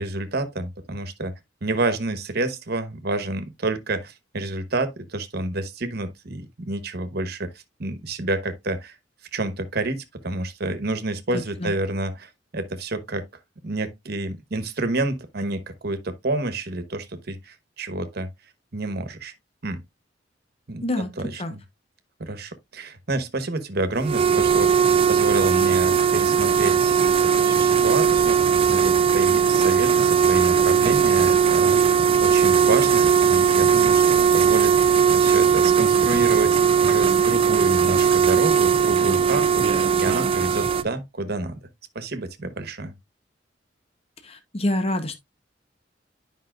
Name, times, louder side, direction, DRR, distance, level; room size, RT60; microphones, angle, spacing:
voice 1, 0.0-1.3 1.6-7.5 7.8-9.0 9.3-13.2 13.6-18.3 18.7-19.3 19.6-19.8 20.7-20.8 21.2-21.6 22.2-31.8 32.2-39.6 40.0-41.6 41.9-42.9, right 2 dB, 60° right, 1.1 m, -29 dB
voice 2, 20.8-21.5 44.2-45.2, left 1 dB, 35° left, 0.9 m, -27 dB
sound 1, 24.0-40.8, right 7 dB, 30° right, 0.4 m, -18 dB
10.0 x 5.4 x 2.4 m
head